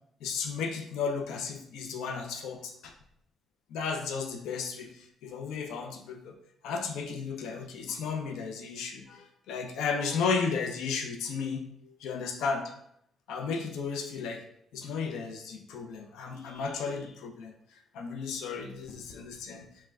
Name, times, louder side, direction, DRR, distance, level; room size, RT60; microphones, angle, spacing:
voice 1, 0.2-2.9 3.7-6.3 6.6-12.8 13.3-14.4 14.7-19.7, left 5 dB, 90° left, 4 dB, 0.4 m, -34 dB
3.3 x 2.1 x 3.4 m, 0.73 s
cardioid pair, 90°, 0 cm